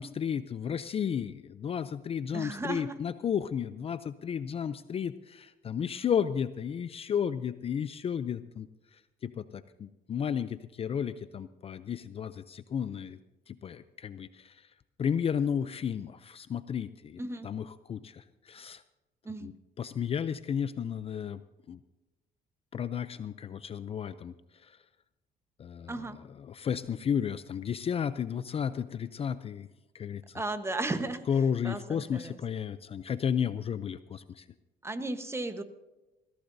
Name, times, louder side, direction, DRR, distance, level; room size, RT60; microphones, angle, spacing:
voice 1, 0.0-8.7 8.9-13.2 13.5-14.7 15.0-18.8 19.4-19.5 19.8-21.4 21.7-21.8 22.7-24.3 24.6-24.8 25.6-26.0 26.4-29.7 29.9-30.4 31.3-34.5, left 8 dB, 35° left, 13 dB, 0.5 m, -33 dB
voice 2, 2.3-3.0 17.2-17.5 19.2-19.5 25.9-26.2 30.3-31.2 31.6-32.4 34.8-35.6, right 2 dB, 15° right, 9 dB, 1.1 m, -35 dB
21.5 x 15.5 x 2.7 m, 1.1 s
cardioid pair, 110°, 17 cm